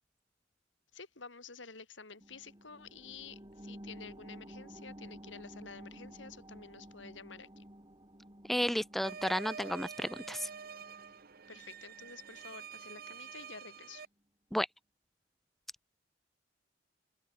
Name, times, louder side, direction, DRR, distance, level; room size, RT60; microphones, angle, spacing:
voice 1, 0.9-7.6 11.5-14.0, left 5 dB, 80° left, 2.9 m, -50 dB
sound 1, 2.2-13.3 13.7-13.8, equal, 25° right, 5.5 m, -53 dB
voice 2, 8.5-10.5 14.5-14.7, equal, ahead, 0.4 m, -32 dB
sound 2, 9.0-14.1, right 6 dB, 55° right, 1.1 m, -47 dB
open air
head